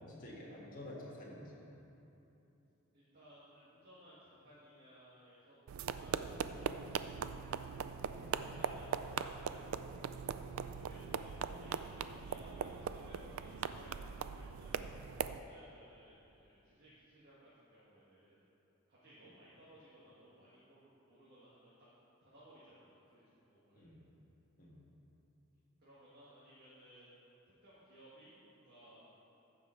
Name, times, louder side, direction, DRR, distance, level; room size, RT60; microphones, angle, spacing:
voice 1, 0.0-1.6 8.1-8.4 11.5-11.7 23.8-24.0 24.6-24.8, left 1 dB, 40° left, -4 dB, 1.6 m, -50 dB
voice 2, 2.9-7.5 8.4-9.9 10.7-18.4 18.9-21.7 22.3-24.0 25.8-27.1 27.6-29.1, right 1 dB, 45° right, -10 dB, 1.7 m, -60 dB
sound 1, 5.7-15.4, right 7 dB, 70° right, 0.3 m, -40 dB
14.5 x 5.2 x 4.4 m, 2.9 s
head